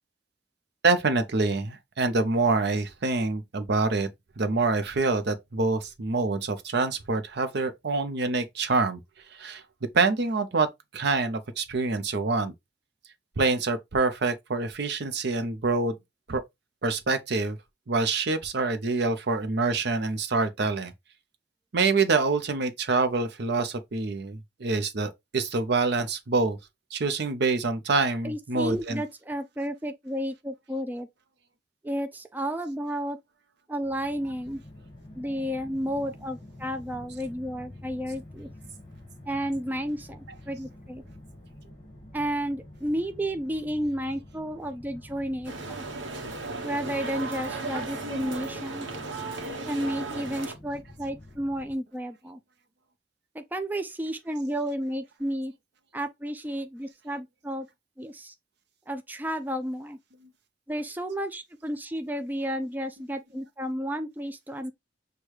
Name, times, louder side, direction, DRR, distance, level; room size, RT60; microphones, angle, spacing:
voice 1, 0.8-4.1 4.4-9.0 9.3-9.6 9.9-10.7 10.9-12.5 13.4-16.0 16.3-16.4 16.8-17.6 17.9-20.9 21.7-26.6 26.9-29.0, right 3 dB, 65° right, 0.7 m, -26 dB
voice 2, 28.2-31.1 31.8-33.2 33.7-34.6 35.1-38.5 39.3-41.0 42.1-45.8 46.6-48.9 49.7-52.4 53.3-55.5 55.9-57.7 58.0-58.3 58.9-60.0 60.7-64.7, equal, 10° right, 0.3 m, -32 dB
sound 1, 33.8-51.7, left 1 dB, 25° left, 1.5 m, -48 dB
sound 2, 45.4-50.5, right 3 dB, 85° right, 0.9 m, -35 dB
6.3 x 2.3 x 3.1 m
head